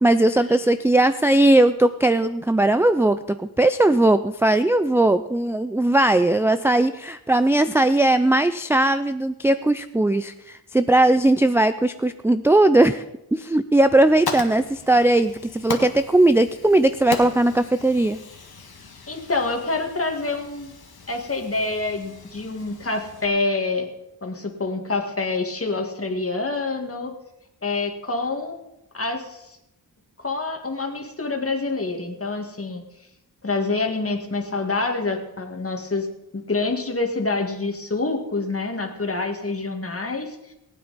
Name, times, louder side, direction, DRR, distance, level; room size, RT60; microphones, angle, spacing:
voice 1, 0.0-13.0 13.3-18.2, right 1 dB, 5° right, 11 dB, 0.4 m, -19 dB
Fire, 13.8-23.3, left 4 dB, 65° left, 1.7 m, -37 dB
voice 2, 19.1-20.7 21.1-23.9 24.2-27.1 27.6-28.6 28.9-29.6 30.2-32.8 33.4-36.1 36.3-40.4, left 3 dB, 35° left, 3 dB, 1.9 m, -26 dB
19.0 x 8.9 x 4.1 m, 0.87 s
wide cardioid pair, 80°, 40 cm